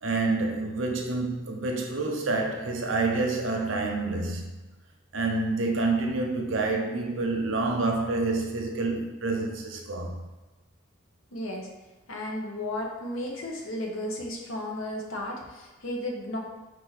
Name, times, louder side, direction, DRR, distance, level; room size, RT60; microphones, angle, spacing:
voice 1, 0.0-4.6 5.1-10.2, right 3 dB, 70° right, 0.7 m, -28 dB
voice 2, 11.3-11.7 12.1-16.4, left 1 dB, 80° left, 0.9 m, -34 dB
4.6 x 2.6 x 4.0 m
head